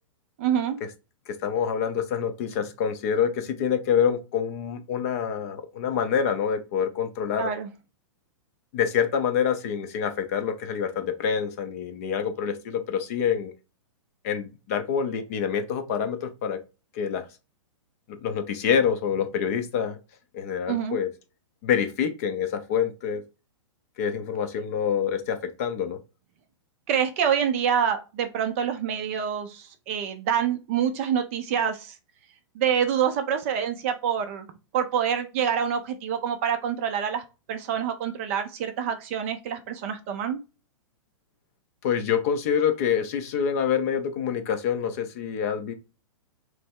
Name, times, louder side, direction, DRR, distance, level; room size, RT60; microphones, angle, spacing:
voice 1, 0.4-0.8 7.4-7.7 20.7-21.0 26.9-31.9 32.6-34.5 34.7-37.2 37.5-40.4, right 8 dB, 25° right, 0.4 m, -26 dB
voice 2, 1.3-7.5 8.7-13.5 14.2-16.6 16.9-17.3 18.2-20.0 20.3-21.1 21.6-23.2 24.0-26.0 41.8-45.7, left 7 dB, 30° left, 0.5 m, -26 dB
3.3 x 3.2 x 4.4 m
hypercardioid pair, 170°, 17 cm